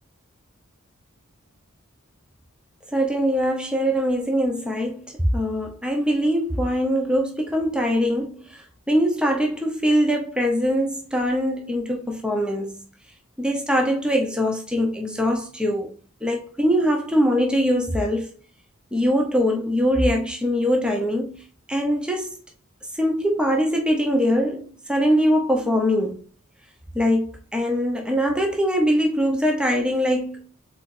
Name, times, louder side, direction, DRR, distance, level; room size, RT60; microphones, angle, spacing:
voice 1, 2.9-5.1 5.3-12.7 13.4-15.9 16.2-18.3 18.9-21.3 21.7-22.3 22.9-26.2 26.9-30.4, equal, 5° right, 0.7 m, -22 dB
4.3 x 3.9 x 2.5 m
head